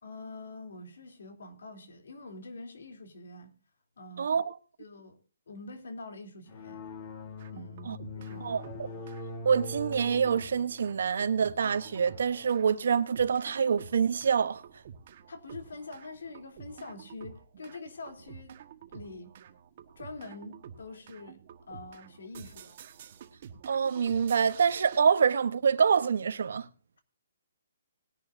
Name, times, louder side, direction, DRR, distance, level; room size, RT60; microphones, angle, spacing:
voice 1, 0.0-3.5 4.0-4.4 4.8-5.2 5.5-6.9 7.5-8.0 8.2-8.6 8.9-9.0 15.3-18.5 18.9-19.3 19.9-21.4 21.7-22.8, left 2 dB, 75° left, 3.1 m, -45 dB
voice 2, 4.2-4.6 7.9-8.0 8.4-8.6 9.4-14.6 23.7-26.7, right 6 dB, 65° right, 1.0 m, -26 dB
sound 1, 6.5-14.6, left 2 dB, 30° left, 1.6 m, -44 dB
sound 2, 7.4-8.4 8.6-25.0, right 8 dB, 40° right, 1.3 m, -50 dB
19.5 x 11.0 x 2.6 m
hypercardioid pair, 170°, 0 cm